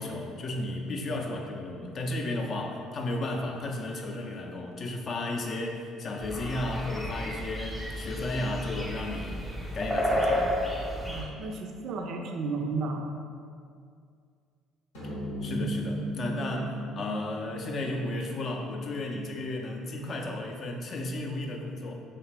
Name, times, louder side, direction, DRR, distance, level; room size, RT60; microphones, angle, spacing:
voice 1, 0.0-9.5 9.7-10.5 15.4-21.9, left 2 dB, 50° left, 2 dB, 0.4 m, -33 dB
sound 1, 6.2-11.2, equal, 5° left, 0.6 m, -31 dB
voice 2, 11.0-13.1, right 3 dB, 60° right, 3 dB, 0.3 m, -33 dB
sound 2, 14.9-19.6, right 1 dB, 85° left, 0.8 m, -37 dB
2.5 x 2.4 x 3.2 m, 2.3 s
hypercardioid pair, 60°, 0 cm